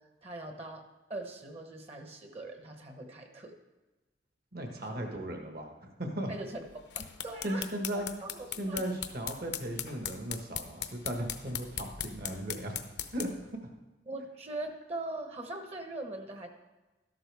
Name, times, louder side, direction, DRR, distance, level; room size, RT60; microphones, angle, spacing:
voice 1, 0.2-0.8 1.1-3.5 4.8-5.2 6.3-6.6 6.9-7.7 7.9-8.8 14.1-16.5, right 2 dB, 35° right, 5 dB, 1.0 m, -41 dB
voice 2, 4.5-6.3 7.4-8.1 8.6-12.8 13.1-13.6, right 1 dB, 55° right, 3 dB, 1.5 m, -36 dB
sound 1, 6.7-13.5, left 10 dB, 70° left, 0.7 m, -40 dB
13.0 x 11.5 x 3.5 m, 1.1 s
head